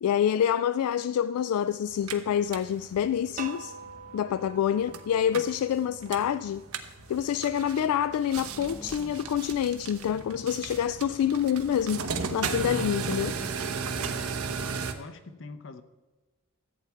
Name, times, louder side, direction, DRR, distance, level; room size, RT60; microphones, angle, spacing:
voice 1, 0.0-3.7 4.1-6.6 7.1-12.0 12.3-13.4, left 9 dB, 85° left, 0.3 m, -27 dB
sound 1, 1.9-14.9, right 5 dB, 85° right, 1.0 m, -36 dB
sound 2, 3.4-6.3, right 5 dB, 35° right, 0.7 m, -45 dB
sound 3, 8.3-13.6, equal, ahead, 0.4 m, -48 dB
voice 2, 14.0-15.8, left 3 dB, 60° left, 0.8 m, -45 dB
14.0 x 8.4 x 4.5 m
head